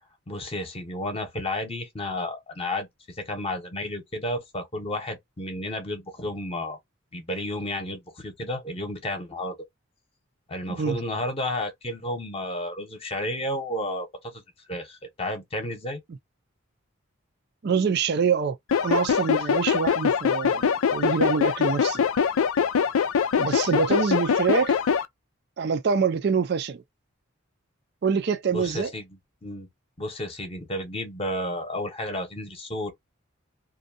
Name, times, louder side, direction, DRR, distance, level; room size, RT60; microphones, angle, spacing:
voice 1, 0.3-6.8 7.1-9.5 10.5-14.4 14.7-16.0 28.5-29.1 29.4-29.7 30.0-32.9, left 1 dB, 25° left, 0.8 m, -32 dB
voice 2, 17.6-18.6 18.8-20.7 20.9-22.1 23.4-24.8 25.6-26.8 28.0-28.9, right 6 dB, 50° right, 0.4 m, -25 dB
sound 1, 18.7-25.0, left 6 dB, 80° left, 0.4 m, -23 dB
2.6 x 2.2 x 2.6 m
head